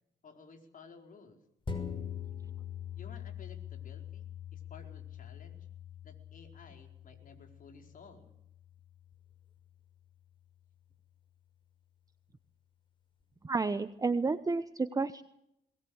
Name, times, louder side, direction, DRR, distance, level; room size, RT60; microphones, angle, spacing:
voice 1, 0.2-1.4 2.9-5.7 6.0-8.4, left 4 dB, 50° left, 4 dB, 4.7 m, -55 dB
sound 1, 1.7-10.5 10.9-11.0, left 8 dB, 25° left, 6.0 m, -44 dB
voice 2, 13.4-15.2, right 4 dB, 20° right, 11 dB, 1.0 m, -31 dB
22.0 x 19.5 x 8.0 m, 0.81 s
cardioid pair, 100°, 18 cm